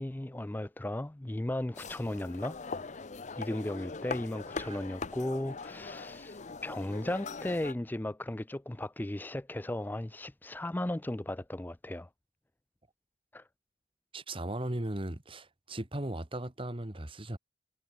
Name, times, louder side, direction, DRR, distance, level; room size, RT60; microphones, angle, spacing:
voice 1, 0.0-2.6 3.4-12.1 13.3-13.5, left 1 dB, 10° left, 0.4 m, -36 dB
sound 1, 1.7-7.7, left 4 dB, 40° left, 0.8 m, -41 dB
voice 2, 14.1-17.4, right 1 dB, 30° right, 1.6 m, -37 dB
head